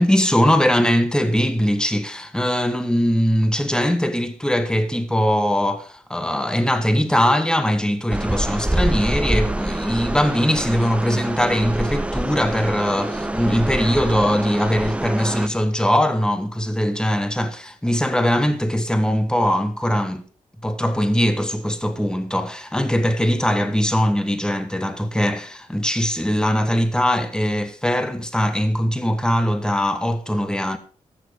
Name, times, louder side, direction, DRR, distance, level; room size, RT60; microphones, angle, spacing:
voice 1, 0.0-20.2 20.6-30.8, equal, 5° left, 1.4 m, -21 dB
sound 1, 8.1-15.5, right 1 dB, 10° right, 0.7 m, -25 dB
13.0 x 7.0 x 5.0 m
cardioid pair, 85°, 13 cm